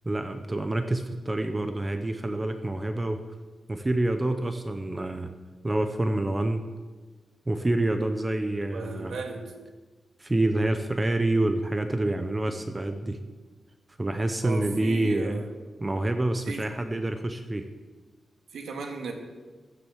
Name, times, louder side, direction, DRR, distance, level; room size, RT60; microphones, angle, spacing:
voice 1, 0.0-3.3 3.7-5.3 5.6-6.6 7.5-9.2 10.2-13.2 14.0-15.4 15.8-17.7, right 1 dB, 20° right, 7 dB, 0.7 m, -27 dB
voice 2, 8.7-9.5 14.4-15.4 16.5-16.6 18.5-19.1, right 4 dB, 90° right, 3 dB, 1.9 m, -35 dB
13.5 x 7.7 x 7.1 m, 1.4 s
wide cardioid pair, 145°, 0 cm